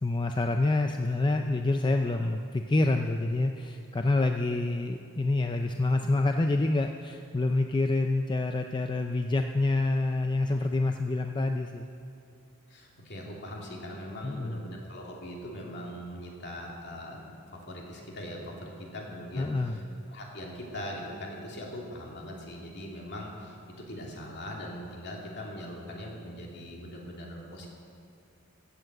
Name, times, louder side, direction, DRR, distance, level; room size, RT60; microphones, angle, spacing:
voice 1, 0.0-11.9 14.2-14.6 19.4-19.8, left 2 dB, 20° left, 5 dB, 0.4 m, -27 dB
voice 2, 12.7-19.8 20.1-27.7, equal, 50° left, -2 dB, 2.7 m, -41 dB
15.0 x 7.7 x 8.0 m, 2.7 s
head